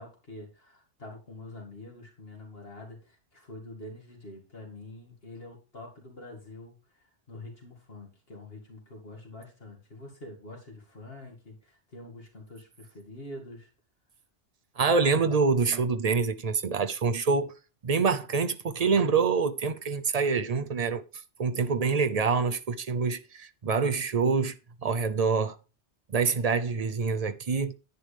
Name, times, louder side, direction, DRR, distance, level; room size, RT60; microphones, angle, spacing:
voice 1, 0.0-13.7, left 2 dB, 55° left, 2.5 m, -46 dB
voice 2, 14.8-17.5 17.8-21.0 21.4-24.5 24.8-25.6 26.1-27.7, right 5 dB, 40° right, 0.7 m, -26 dB
10.5 x 9.3 x 3.4 m
omnidirectional pair, 1.2 m